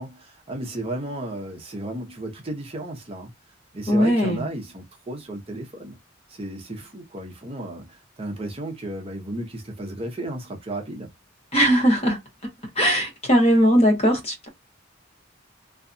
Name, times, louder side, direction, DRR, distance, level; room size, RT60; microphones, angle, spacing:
voice 1, 0.0-3.3 3.7-6.0 6.3-11.1, right 1 dB, 30° right, 0.6 m, -34 dB
voice 2, 3.9-4.5 11.5-12.2 12.8-14.5, equal, 30° left, 1.0 m, -19 dB
2.7 x 2.2 x 2.5 m
head